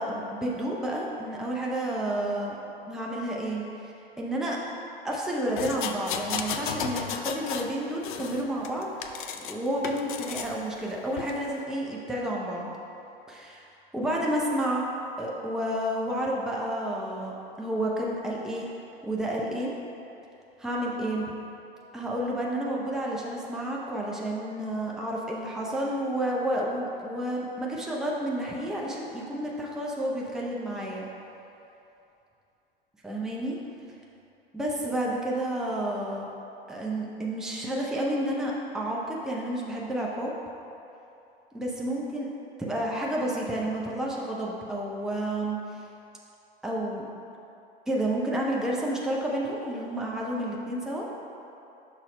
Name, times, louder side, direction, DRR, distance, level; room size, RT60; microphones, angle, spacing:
voice 1, 0.0-2.5 2.9-4.6 5.0-8.9 9.3-12.7 13.3-14.9 15.2-18.7 19.0-19.7 20.6-21.3 21.9-31.1 33.0-33.6 34.5-36.3 36.7-40.3 41.5-42.3 42.6-45.8 46.6-47.0 47.9-51.0, right 1 dB, ahead, -4 dB, 0.6 m, -30 dB
sound 1, 5.6-7.7 8.0-9.5 9.8-10.5 11.2-11.3, left 7 dB, 55° left, 0.5 m, -34 dB
6.0 x 4.1 x 5.0 m, 2.8 s
figure-of-eight pair, 85°, 29 cm